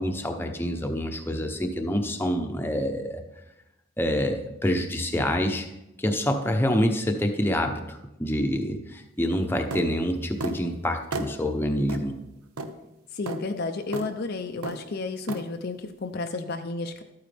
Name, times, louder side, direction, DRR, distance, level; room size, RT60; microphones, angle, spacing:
voice 1, 0.0-3.2 4.0-5.7 6.0-12.2, equal, 10° left, 4 dB, 0.7 m, -27 dB
sound 1, 9.7-9.9 10.4-10.6 11.1-11.3 11.9-12.0 12.6-12.7 13.3-13.4 13.9-14.1 14.6-14.8 15.3-15.4, right 2 dB, 90° right, 0.8 m, -32 dB
voice 2, 13.1-17.0, left 3 dB, 45° left, 6 dB, 0.5 m, -32 dB
12.0 x 9.1 x 3.4 m, 0.92 s
head